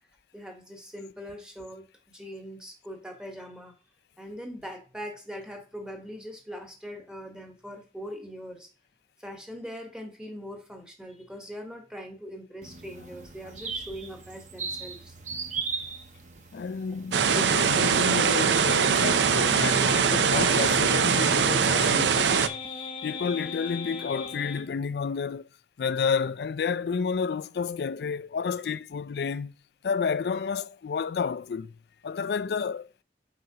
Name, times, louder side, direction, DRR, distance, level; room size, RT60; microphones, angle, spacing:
voice 1, 0.3-3.7 4.2-8.7 9.2-15.1, equal, 5° right, 1.1 m, -41 dB
sound 1, 12.6-18.9, right 5 dB, 45° right, 0.9 m, -39 dB
voice 2, 16.5-22.5 23.0-25.5 25.8-29.5 29.8-31.7 32.0-32.9, left 5 dB, 65° left, 0.4 m, -30 dB
sound 2, 17.1-22.5, right 6 dB, 85° right, 0.5 m, -22 dB
sound 3, 19.3-24.7, left 3 dB, 30° left, 0.8 m, -37 dB
7.8 x 5.2 x 2.8 m
head